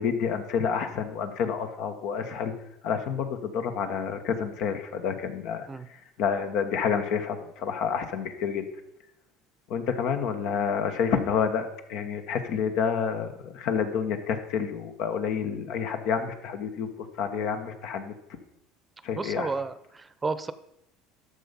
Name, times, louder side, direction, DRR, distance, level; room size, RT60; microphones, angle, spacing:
voice 1, 0.0-2.5 2.8-5.7 6.2-8.6 9.7-16.9 17.2-18.1 19.0-19.5, left 7 dB, 70° left, 7 dB, 1.4 m, -29 dB
voice 2, 19.1-20.5, right 4 dB, 20° right, 14 dB, 0.8 m, -32 dB
11.5 x 6.8 x 5.3 m, 0.82 s
supercardioid pair, 95°, 0 cm